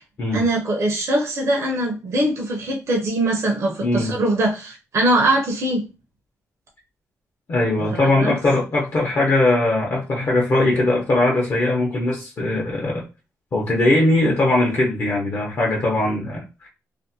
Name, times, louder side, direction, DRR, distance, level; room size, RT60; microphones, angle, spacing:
voice 1, 0.3-5.9 7.9-8.4, right 1 dB, 55° right, 0.6 m, -22 dB
voice 2, 3.8-4.1 7.5-13.0 13.5-16.7, left 2 dB, 50° left, 0.7 m, -20 dB
2.5 x 2.1 x 2.6 m
cardioid pair, 120°, 6 cm